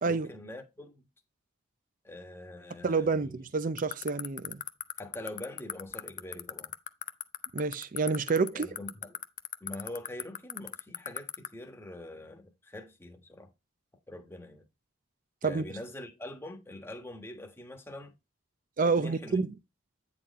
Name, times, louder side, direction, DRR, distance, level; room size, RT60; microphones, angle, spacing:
voice 1, 0.0-1.0 2.0-3.4 5.0-6.7 8.5-9.2 9.6-13.5 14.1-14.6 15.4-18.1 18.8-19.4, left 1 dB, 10° left, 1.3 m, -44 dB
voice 2, 2.8-4.6 7.5-8.7 15.4-15.6 18.8-19.5, right 4 dB, 40° right, 0.5 m, -28 dB
sound 1, 3.8-11.5, left 11 dB, 40° left, 0.5 m, -34 dB
9.1 x 4.2 x 4.0 m
head